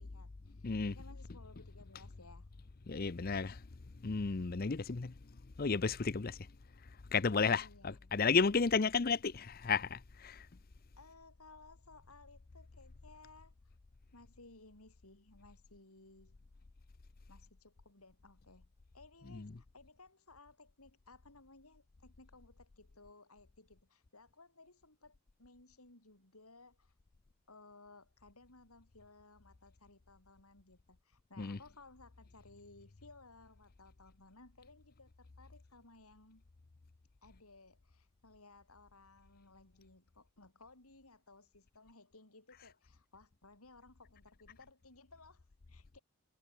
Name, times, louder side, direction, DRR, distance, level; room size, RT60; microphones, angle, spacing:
voice 1, 0.0-2.5 7.6-8.0 11.0-13.5 14.1-16.4 17.3-18.7 18.9-26.9 27.5-36.4 37.2-46.0, left 3 dB, 80° left, 4.8 m, -60 dB
voice 2, 0.6-0.9 2.9-3.6 4.0-5.1 5.6-6.4 7.1-10.0 10.2-10.3 19.3-19.5 31.4-31.6, left 5 dB, 40° left, 0.6 m, -32 dB
head